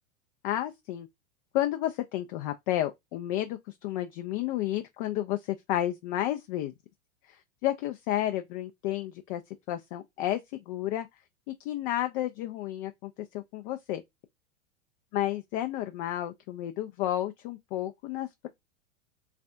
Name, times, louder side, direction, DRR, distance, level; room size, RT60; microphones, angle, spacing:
voice 1, 0.4-1.1 1.5-6.7 7.3-9.4 9.7-10.4 10.7-11.1 11.5-14.0 15.1-18.5, left 13 dB, 45° left, 0.4 m, -31 dB
3.3 x 2.2 x 2.5 m
hypercardioid pair, 105°, 38 cm